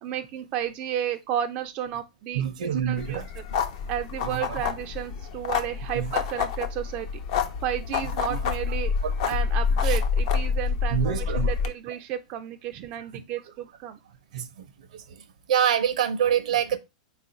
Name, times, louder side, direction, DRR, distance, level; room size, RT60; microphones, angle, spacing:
voice 1, 0.0-2.4 2.7-3.4 3.9-7.1 7.6-8.9 9.2-14.0, right 10 dB, 35° right, 0.3 m, -32 dB
voice 2, 2.3-3.3 4.2-4.4 5.9-6.1 8.3-8.4 9.0-9.1 9.8-10.0 10.9-11.5 14.3-14.5 15.5-16.8, right 9 dB, 75° right, 0.6 m, -25 dB
sound 1, 3.0-11.7, left 6 dB, 55° left, 0.6 m, -27 dB
4.0 x 2.4 x 3.8 m
hypercardioid pair, 135°, 4 cm